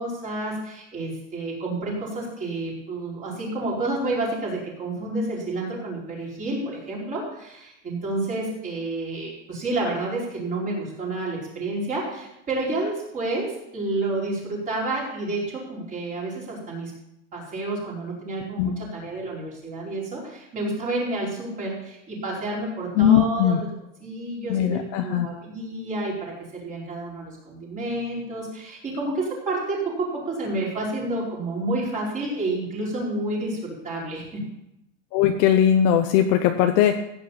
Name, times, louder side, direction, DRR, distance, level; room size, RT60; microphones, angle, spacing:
voice 1, 0.0-16.9 17.3-23.7 24.0-34.4, right 2 dB, 20° right, -4 dB, 4.8 m, -30 dB
voice 2, 23.0-23.6 24.5-25.3 35.1-36.9, left 10 dB, 35° left, 6 dB, 0.7 m, -19 dB
16.0 x 9.3 x 5.8 m, 0.84 s
supercardioid pair, 175°, 38 cm